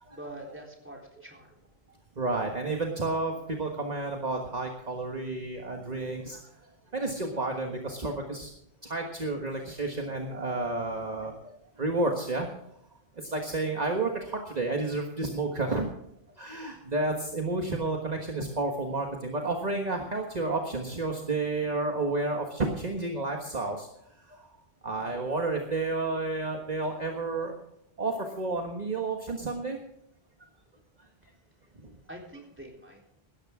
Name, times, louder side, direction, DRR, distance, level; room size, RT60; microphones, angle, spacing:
voice 1, 0.1-1.6 32.1-33.0, right 1 dB, 10° right, -1 dB, 3.8 m, -45 dB
voice 2, 2.1-8.5 8.8-12.5 13.2-15.9 16.4-23.9 24.2-24.5 24.8-27.5 28.0-29.8 30.4-30.5 31.8-31.9, right 2 dB, 40° right, 2 dB, 1.6 m, -31 dB
17.0 x 13.0 x 3.7 m, 0.77 s
omnidirectional pair, 1.0 m